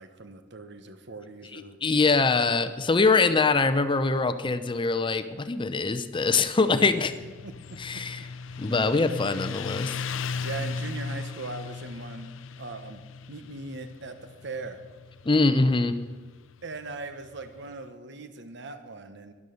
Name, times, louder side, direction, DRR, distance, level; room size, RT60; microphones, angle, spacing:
voice 1, 0.0-1.8 7.4-8.0 10.4-12.3 12.6-14.2 14.4-14.8 16.6-19.3, right 3 dB, 65° right, 9 dB, 1.0 m, -40 dB
voice 2, 1.5-7.1 7.8-8.3 8.6-10.0 15.2-16.0, left 3 dB, 25° left, 11 dB, 0.6 m, -23 dB
Motorcycle, 6.7-17.8, left 5 dB, 80° left, 0.5 m, -37 dB
12.5 x 11.0 x 6.4 m, 1.3 s
head